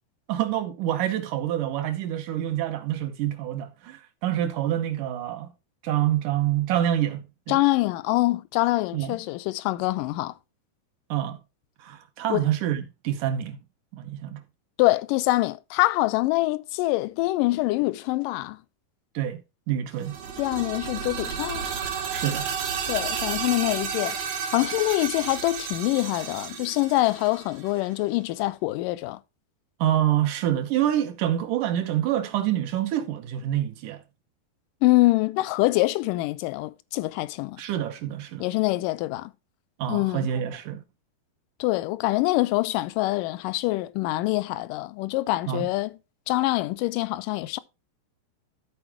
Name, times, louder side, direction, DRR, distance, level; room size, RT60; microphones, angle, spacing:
voice 1, 0.3-5.5 5.8-7.6 8.9-9.2 11.1-11.4 11.8-13.6 13.9-14.4 19.2-19.4 19.7-20.2 22.1-22.5 29.8-34.0 37.6-38.5 39.8-40.8 45.5-45.7, right 11 dB, 70° right, 2.2 m, -27 dB
voice 2, 7.5-10.3 12.3-12.4 14.8-18.6 20.4-21.6 22.9-24.2 24.5-29.2 34.8-37.6 38.4-39.3 39.9-40.3 41.6-46.0 46.3-47.6, left 19 dB, 80° left, 2.1 m, -25 dB
sound 1, 20.0-27.8, right 7 dB, 85° right, 3.6 m, -32 dB
13.5 x 4.5 x 4.5 m
omnidirectional pair, 4.2 m